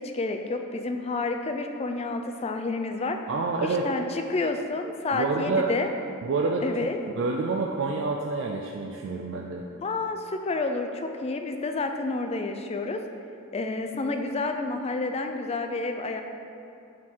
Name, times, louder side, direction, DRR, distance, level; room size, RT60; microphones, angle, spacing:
voice 1, 0.0-3.2 3.6-5.9 6.6-7.0 9.8-13.0 13.5-16.2, left 3 dB, 30° left, 6 dB, 0.4 m, -29 dB
voice 2, 3.3-3.9 5.1-5.7 6.2-9.6, right 3 dB, 55° right, 0 dB, 0.4 m, -28 dB
8.5 x 3.7 x 4.5 m, 2.7 s
head